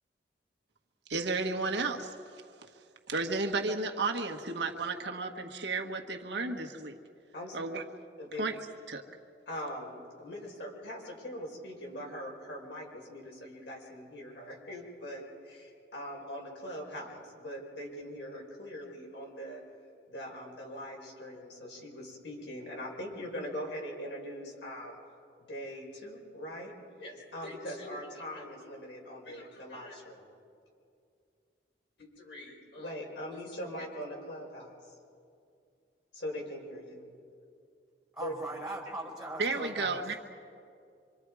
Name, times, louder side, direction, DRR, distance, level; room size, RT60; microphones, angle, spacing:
voice 1, 1.1-2.1 3.1-7.0 7.5-7.8 8.4-8.6 8.9-9.0 39.4-40.1, right 3 dB, 75° right, 3 dB, 1.5 m, -33 dB
voice 2, 9.5-19.6 20.1-25.0 25.5-26.7 27.0-30.3 32.0-34.9 36.1-37.0 38.2-38.3, equal, 75° left, -1 dB, 5.3 m, -42 dB
voice 3, 38.1-40.1, right 1 dB, 5° right, -2 dB, 5.2 m, -40 dB
26.0 x 25.5 x 4.9 m, 2.4 s
head